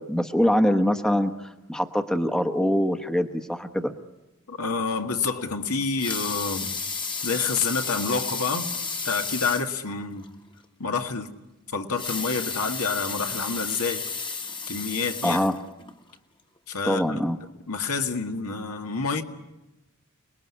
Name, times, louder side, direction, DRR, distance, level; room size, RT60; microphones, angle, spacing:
voice 1, 0.0-3.9 15.2-15.5 16.8-17.4, equal, 5° left, 1.1 m, -24 dB
voice 2, 4.5-6.7 7.2-8.7 9.0-10.3 10.8-11.3 11.7-14.1 14.7-15.5 16.7-17.2 17.7-19.2, left 4 dB, 75° left, 2.0 m, -28 dB
Water tap faucet / Sink (filling or washing) / Liquid, 5.8-9.8 10.2-10.3 10.6-10.7 11.8-16.0 16.6-16.7, left 5 dB, 20° left, 1.5 m, -32 dB
29.5 x 20.5 x 9.7 m
head